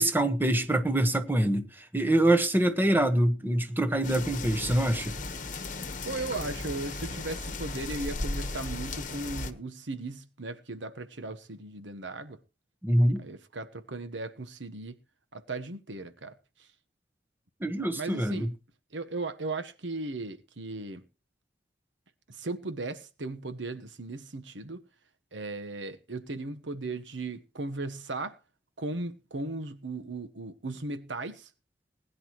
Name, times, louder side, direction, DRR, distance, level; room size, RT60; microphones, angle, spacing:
voice 1, 0.0-5.1 12.8-13.2 17.6-18.5, right 1 dB, 10° right, 1.3 m, -25 dB
sound 1, 4.0-9.5, left 3 dB, 45° left, 1.3 m, -36 dB
voice 2, 6.0-12.4 13.2-15.0 15.3-16.3 17.9-18.5 18.9-21.0 22.3-24.8 25.3-28.4 28.8-31.5, right 2 dB, 75° right, 1.2 m, -37 dB
20.5 x 10.5 x 3.1 m
head